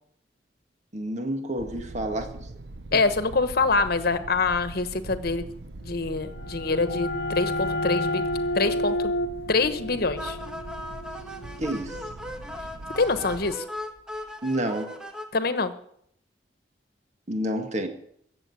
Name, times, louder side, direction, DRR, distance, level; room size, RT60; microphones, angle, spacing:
voice 1, 0.9-2.5 11.6-12.1 14.4-15.0 17.3-17.9, right 1 dB, 40° right, 1.8 m, -29 dB
sound 1, 1.6-13.5, right 2 dB, 70° right, 0.8 m, -42 dB
voice 2, 2.9-5.5 5.8-8.2 8.5-9.1 9.5-10.4 13.0-13.6 15.3-15.7, left 3 dB, 60° left, 1.2 m, -25 dB
sound 2, 6.2-11.7, left 1 dB, 80° left, 1.0 m, -30 dB
sound 3, 10.2-15.3, left 1 dB, 5° right, 1.4 m, -38 dB
15.0 x 7.9 x 9.6 m
head